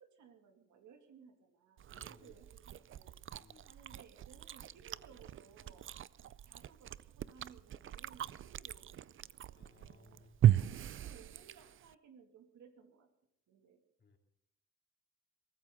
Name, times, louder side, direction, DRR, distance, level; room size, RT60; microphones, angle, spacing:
voice 1, 0.0-3.1 3.7-10.3 10.9-13.1 13.5-13.8, right 7 dB, 70° right, 5 dB, 2.5 m, -61 dB
Chewing mastication, 1.8-11.9, right 11 dB, 45° right, 0.5 m, -37 dB
voice 2, 1.9-2.4 3.4-3.7 9.5-10.7 14.0-14.2, left 3 dB, 35° left, 3 dB, 2.8 m, -63 dB
23.0 x 13.5 x 3.9 m, 0.77 s
cardioid pair, 90°, 30 cm